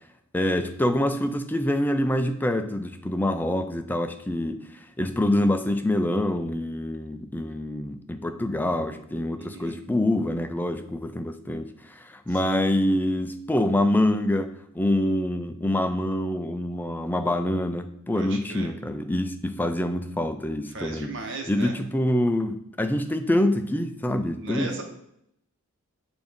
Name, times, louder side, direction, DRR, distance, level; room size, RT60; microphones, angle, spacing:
voice 1, 0.3-4.6 5.0-21.1 21.5-24.7, left 1 dB, 10° left, 8 dB, 0.3 m, -26 dB
voice 2, 9.4-9.8 12.3-12.6 18.1-18.7 20.7-21.8 24.3-24.8, right 3 dB, 60° right, 3 dB, 1.0 m, -37 dB
6.9 x 2.6 x 5.2 m, 0.75 s
head